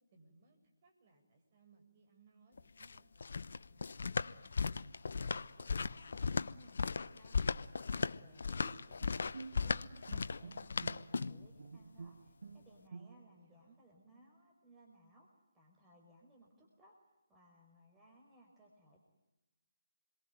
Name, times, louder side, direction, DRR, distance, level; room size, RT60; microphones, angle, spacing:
voice 1, 0.1-4.3 13.1-13.8, right 3 dB, 35° right, 4 dB, 7.9 m, -68 dB
sound 1, 2.6-11.5, left 5 dB, 60° left, 1.0 m, -37 dB
voice 2, 5.6-6.8 7.1-9.3 9.6-9.8 10.1-15.3 15.5-16.9 17.3-19.0, right 1 dB, 10° right, -1 dB, 4.9 m, -64 dB
Bowed string instrument, 8.6-13.5, right 4 dB, 65° right, 1.6 m, -51 dB
28.0 x 23.0 x 9.2 m, 0.97 s
figure-of-eight pair, 150°, 0 cm